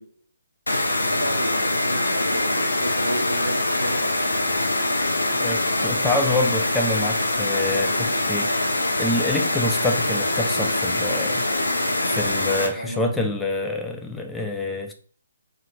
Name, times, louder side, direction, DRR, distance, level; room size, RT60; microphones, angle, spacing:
sound 1, 0.7-12.7, left 2 dB, 80° left, 0.5 m, -23 dB
voice 1, 1.1-4.0 12.8-13.3, right 1 dB, 85° right, 0.4 m, -32 dB
voice 2, 5.3-11.5 12.0-14.9, left 2 dB, 5° left, 0.3 m, -27 dB
2.9 x 2.3 x 2.2 m
figure-of-eight pair, 135°, 0 cm